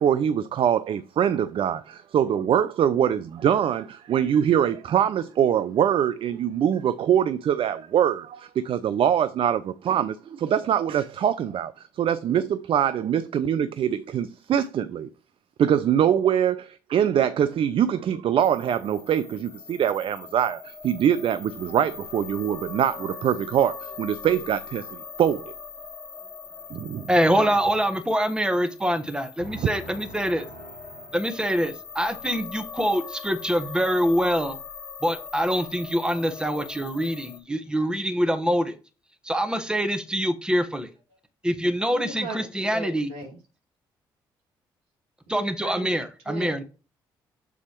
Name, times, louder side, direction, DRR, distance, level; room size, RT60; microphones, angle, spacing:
voice 1, 0.0-15.1 15.6-25.5 26.7-27.1 29.6-29.7, right 9 dB, 60° right, 0.6 m, -23 dB
sound 1, 18.4-37.4, left 5 dB, 20° left, 2.0 m, -41 dB
voice 2, 27.1-30.4 31.1-34.6 35.0-38.7 39.2-40.9 41.4-43.1 45.3-46.6, equal, 10° right, 1.4 m, -25 dB
voice 3, 29.4-31.7 41.9-43.4 45.3-46.6, right 2 dB, 80° right, 2.4 m, -39 dB
7.0 x 4.1 x 4.6 m
hypercardioid pair, 55°, 10 cm